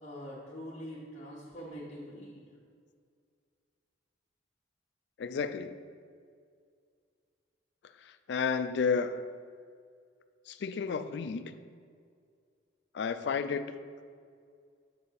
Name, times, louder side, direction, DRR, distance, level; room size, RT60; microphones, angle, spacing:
voice 1, 0.0-2.4, equal, 35° left, -8 dB, 1.1 m, -44 dB
voice 2, 5.2-5.8 8.0-9.2 10.5-11.5 12.9-13.7, left 5 dB, 60° left, 11 dB, 0.3 m, -32 dB
7.0 x 4.7 x 4.1 m, 2.2 s
head